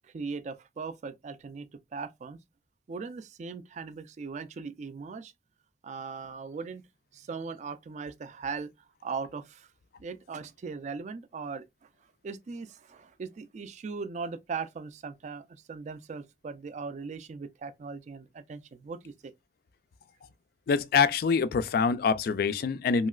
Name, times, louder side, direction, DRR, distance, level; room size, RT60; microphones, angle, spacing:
voice 1, 0.0-2.4 2.9-5.3 5.8-6.8 7.1-8.7 9.0-9.7 10.0-11.6 12.2-19.3, right 5 dB, 40° right, 0.3 m, -39 dB
voice 2, 20.7-23.1, left 5 dB, 55° left, 0.3 m, -25 dB
3.0 x 2.8 x 2.3 m
head